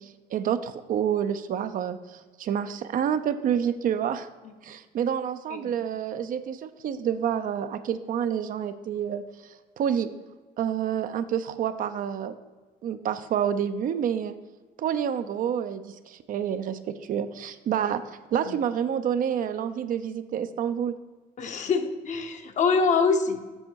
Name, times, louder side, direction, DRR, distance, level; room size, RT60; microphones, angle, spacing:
voice 1, 0.0-4.3 4.6-10.1 10.6-12.3 12.8-14.3 14.8-18.0 18.3-20.9, right 8 dB, 55° right, 10 dB, 0.5 m, -28 dB
voice 2, 21.4-23.4, left 5 dB, 45° left, 6 dB, 0.9 m, -25 dB
7.7 x 6.0 x 4.6 m, 1.3 s
cardioid pair, 110°, 17 cm